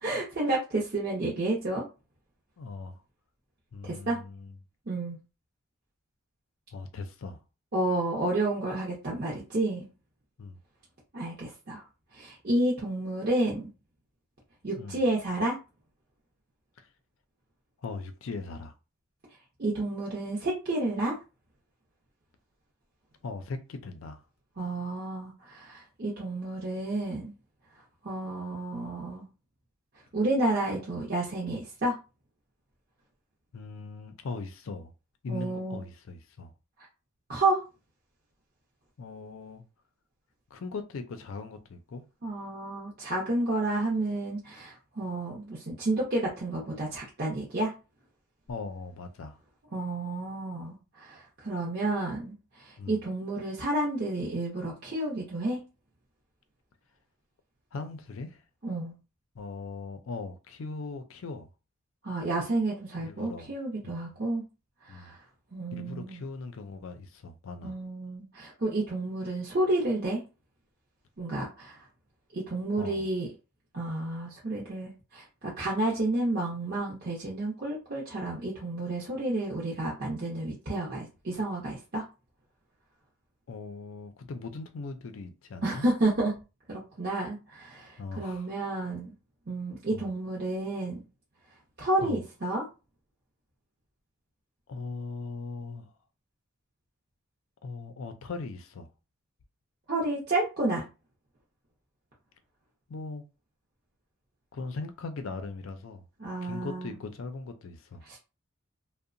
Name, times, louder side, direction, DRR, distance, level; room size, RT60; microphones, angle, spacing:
voice 1, 0.0-1.8 3.8-4.2 4.9-5.2 7.7-9.9 11.1-11.8 12.1-13.7 14.6-15.6 19.6-21.1 24.6-27.3 28.0-29.3 30.1-31.9 35.3-35.8 37.3-37.6 42.2-47.7 49.7-55.6 58.6-58.9 62.0-64.4 64.9-65.2 65.5-66.2 67.6-70.2 71.2-71.8 72.3-73.3 73.7-82.0 85.6-86.3 86.7-89.1 89.5-91.0 91.8-92.6 99.9-100.8 106.2-106.9 108.0-108.2, right 2 dB, 45° right, 0.6 m, -30 dB
voice 2, 2.6-3.0 3.7-4.5 6.7-7.4 10.4-10.6 14.8-15.0 16.8-16.9 17.8-18.7 23.2-24.2 33.5-34.9 35.2-36.5 39.0-39.6 40.5-42.0 48.5-49.4 52.8-53.0 57.7-58.4 59.3-61.5 63.0-63.5 63.8-64.1 64.9-65.2 65.7-67.8 72.8-73.1 75.8-75.9 83.5-85.9 88.0-88.5 89.9-90.1 92.0-92.2 94.7-95.9 97.6-98.9 102.9-103.2 104.5-106.1 106.4-108.0, left 3 dB, 70° left, 0.4 m, -39 dB
2.7 x 2.0 x 2.5 m
head